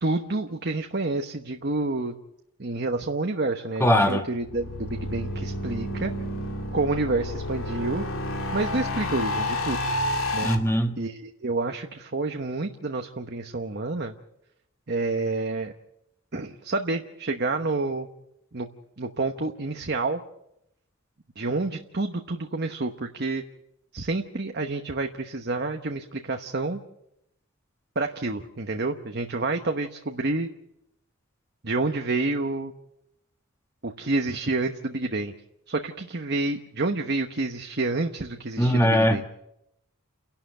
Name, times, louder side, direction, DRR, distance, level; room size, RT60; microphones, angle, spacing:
voice 1, 0.0-2.1 2.6-6.1 6.7-8.1 8.5-9.9 10.3-10.5 11.0-14.1 14.9-15.7 16.3-18.1 18.5-18.7 19.0-20.2 21.4-23.4 23.9-26.8 27.9-30.5 31.6-32.7 33.8-35.3 35.7-39.2, right 2 dB, 50° right, 4 dB, 1.1 m, -28 dB
voice 2, 3.8-4.2 10.4-10.9 38.6-39.3, equal, 10° left, 4 dB, 1.5 m, -21 dB
sound 1, 4.4-10.5, left 1 dB, 75° left, 2.6 m, -30 dB
30.0 x 11.5 x 8.0 m, 0.83 s
head